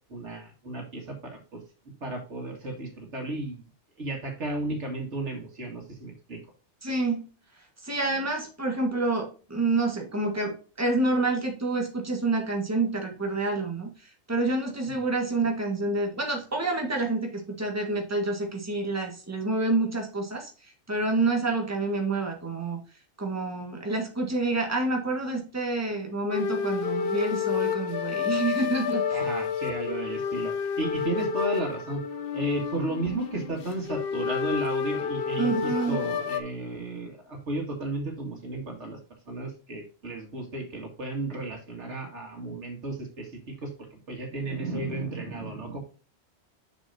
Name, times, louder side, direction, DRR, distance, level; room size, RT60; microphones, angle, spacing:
voice 1, 0.1-1.6 2.0-3.6 4.0-6.4 29.1-32.0 32.3-39.0 39.3-43.7 44.1-45.8, right 2 dB, 80° right, 1 dB, 2.4 m, -33 dB
voice 2, 6.8-7.3 7.8-22.8 23.2-29.2 35.4-36.0, right 2 dB, 15° right, 1 dB, 1.7 m, -28 dB
sound 1, 26.3-36.4, left 7 dB, 60° left, 0.9 m, -30 dB
7.0 x 6.3 x 2.7 m, 0.36 s
omnidirectional pair, 1.2 m